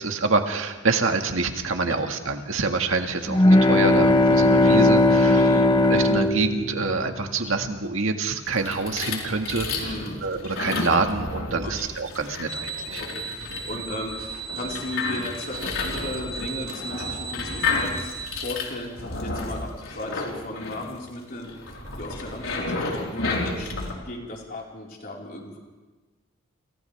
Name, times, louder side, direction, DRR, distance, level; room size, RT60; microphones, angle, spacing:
voice 1, 0.0-5.6 5.9-13.0, right 3 dB, 85° right, 4 dB, 1.9 m, -26 dB
sound 1, 3.3-7.3, left 2 dB, 25° left, 1.0 m, -18 dB
voice 2, 5.3-5.7 9.8-10.2 11.5-11.7 13.0-25.6, left 1 dB, 45° left, -2 dB, 4.8 m, -36 dB
sound 2, 8.5-23.9, left 3 dB, 80° left, 4.5 m, -32 dB
sound 3, 12.5-18.5, right 4 dB, 65° left, 3.0 m, -37 dB
29.5 x 27.5 x 3.5 m, 1.3 s
head